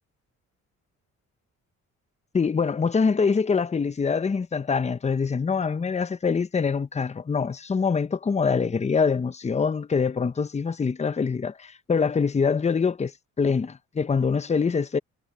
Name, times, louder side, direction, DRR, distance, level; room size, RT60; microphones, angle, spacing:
voice 1, 2.3-13.1 13.4-15.0, left 5 dB, 20° left, 0.8 m, -24 dB
cardioid pair, 90°, 30 cm